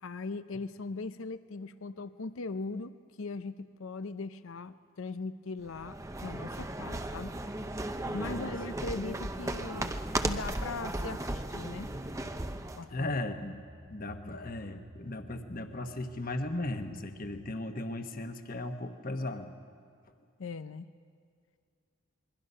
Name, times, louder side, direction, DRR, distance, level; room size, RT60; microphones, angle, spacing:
voice 1, 0.0-7.3 8.1-9.9 10.2-11.9 12.8-13.2 20.4-20.9, left 3 dB, 70° left, 12 dB, 0.6 m, -39 dB
sound 1, 5.7-12.9, right 1 dB, 15° right, 0.6 m, -36 dB
voice 2, 8.0-8.5 9.0-9.2 12.9-13.6 13.9-19.5, left 2 dB, 40° left, 6 dB, 1.3 m, -37 dB
sound 2, 9.1-17.5, left 1 dB, 40° right, 1.8 m, -55 dB
27.0 x 22.0 x 5.6 m, 2.3 s
head